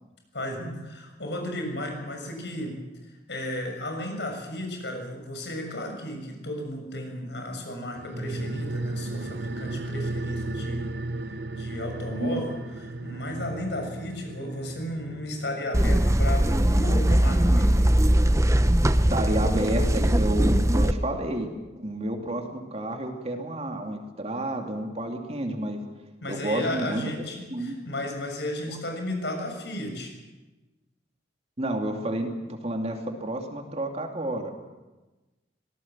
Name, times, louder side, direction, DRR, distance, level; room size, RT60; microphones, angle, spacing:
voice 1, 0.3-2.8 3.3-10.9 11.5-12.6 12.8-17.9 26.2-30.2, left 1 dB, 75° left, 3 dB, 6.8 m, -34 dB
sound 1, 8.0-18.8 19.1-19.2, right 2 dB, 70° right, 1.0 m, -36 dB
sound 2, 15.7-20.9, right 1 dB, 15° right, 0.9 m, -20 dB
voice 2, 19.1-21.5 21.8-25.8 26.3-27.0 27.3-27.7 31.6-32.3 32.6-34.5, right 1 dB, 35° right, 3 dB, 2.9 m, -30 dB
25.0 x 18.5 x 7.6 m, 1.1 s
head